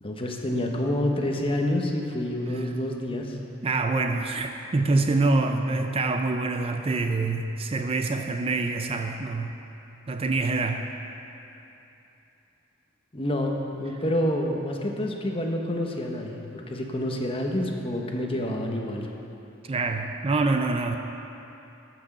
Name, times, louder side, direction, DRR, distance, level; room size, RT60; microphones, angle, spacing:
voice 1, 0.0-3.4 13.1-19.1, left 1 dB, 30° left, 1 dB, 1.1 m, -28 dB
voice 2, 3.6-9.5 10.1-10.9 19.6-21.0, right 3 dB, 30° right, 5 dB, 0.4 m, -25 dB
13.5 x 6.2 x 6.6 m, 3.0 s
head